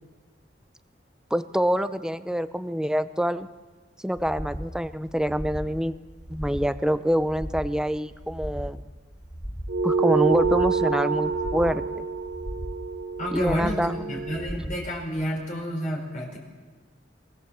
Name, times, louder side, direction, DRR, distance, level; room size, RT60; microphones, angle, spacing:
voice 1, 1.3-3.5 4.0-5.9 6.3-8.9 9.8-12.1 13.3-14.0 14.5-14.8, equal, 5° right, 12 dB, 0.8 m, -26 dB
sound 1, 4.2-4.7 5.1-5.7 6.1-6.7 7.1-7.7 8.2-8.7 9.2-9.8 10.2-10.8 11.2-11.8 12.2-12.8 13.2-13.8 14.2-14.8 15.2-15.3, equal, 15° left, 3.7 m, -37 dB
sound 2, 9.7-14.5, right 5 dB, 55° right, 1.0 m, -27 dB
voice 2, 13.2-16.4, equal, 45° left, 0 dB, 5.1 m, -30 dB
23.5 x 22.0 x 7.5 m, 1.4 s
head